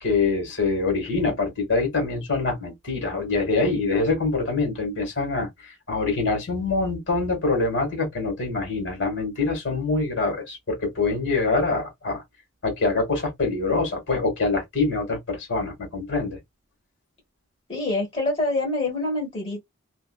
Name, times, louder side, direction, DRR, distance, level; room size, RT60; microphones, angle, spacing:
voice 1, 0.0-12.2 12.6-16.4, left 3 dB, 60° left, 1.5 m, -25 dB
voice 2, 17.7-19.6, left 2 dB, 25° left, 1.3 m, -26 dB
2.5 x 2.4 x 2.2 m
head